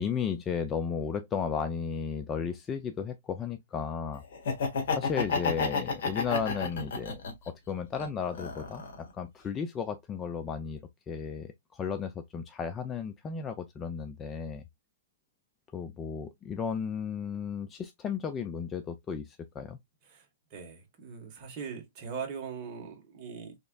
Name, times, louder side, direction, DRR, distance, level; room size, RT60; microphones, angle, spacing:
voice 1, 0.0-4.2 5.0-8.8 9.1-10.8 11.1-14.6 15.7-19.8, left 6 dB, 15° left, 0.3 m, -34 dB
Laughter, 4.3-7.5 7.9-9.1, left 4 dB, 55° left, 1.4 m, -31 dB
voice 2, 20.5-23.6, right 6 dB, 30° right, 1.3 m, -40 dB
3.6 x 3.1 x 2.2 m
hypercardioid pair, 155°, 0 cm